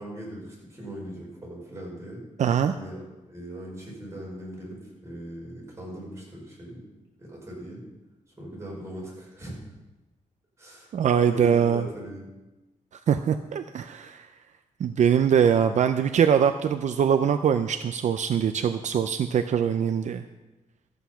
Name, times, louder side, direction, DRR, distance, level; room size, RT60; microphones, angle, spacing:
voice 1, 0.0-2.2 2.7-3.0 3.3-6.8 7.2-7.8 8.4-9.5 10.6-10.9 11.3-12.3, right 1 dB, 20° right, -4 dB, 5.4 m, -39 dB
voice 2, 2.4-2.7 10.9-11.8 13.1-14.3 14.8-20.2, right 8 dB, 65° right, 8 dB, 0.5 m, -22 dB
13.5 x 8.2 x 5.7 m, 1.1 s
wide cardioid pair, 135°, 13 cm